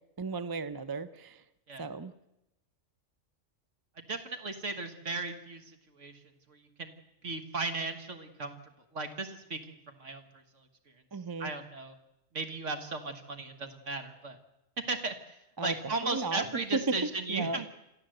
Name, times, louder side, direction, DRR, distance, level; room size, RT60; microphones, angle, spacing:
voice 1, 0.2-1.4 1.8-2.1 11.1-11.5 15.6-15.7 16.0-16.5 16.7-17.0 17.3-17.6, right 3 dB, 25° right, 13 dB, 0.6 m, -34 dB
voice 2, 4.0-6.2 6.5-6.9 7.2-8.6 8.9-10.2 11.4-11.9 12.3-14.4 14.9-15.2 15.6-17.7, right 3 dB, 70° right, 6 dB, 1.9 m, -36 dB
28.0 x 13.5 x 7.8 m, 0.90 s
omnidirectional pair, 1.3 m